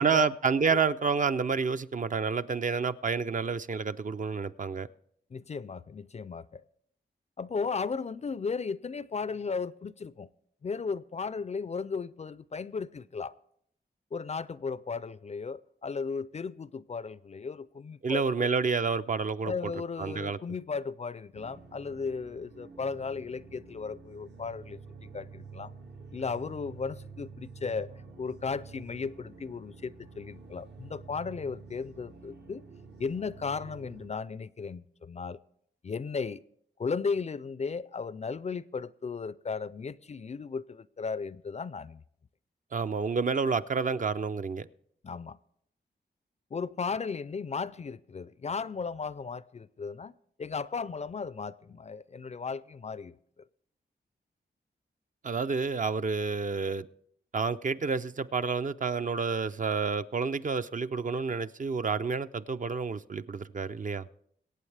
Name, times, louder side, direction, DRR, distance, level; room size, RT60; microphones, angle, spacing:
voice 1, 0.0-4.9 18.0-19.5 20.0-20.4 42.7-44.7 55.2-56.9 57.3-64.1, right 5 dB, 45° right, 0.5 m, -29 dB
voice 2, 5.3-6.6 7.4-10.3 10.6-13.4 14.1-18.5 19.4-25.7 26.1-27.9 28.2-32.6 33.0-35.4 35.8-36.4 36.8-42.0 45.0-45.4 46.5-50.1 50.4-53.2, left 5 dB, 40° left, 0.4 m, -35 dB
sound 1, 21.3-34.1, right 4 dB, 65° right, 1.0 m, -49 dB
23.0 x 8.5 x 3.3 m
wide cardioid pair, 85°, 19 cm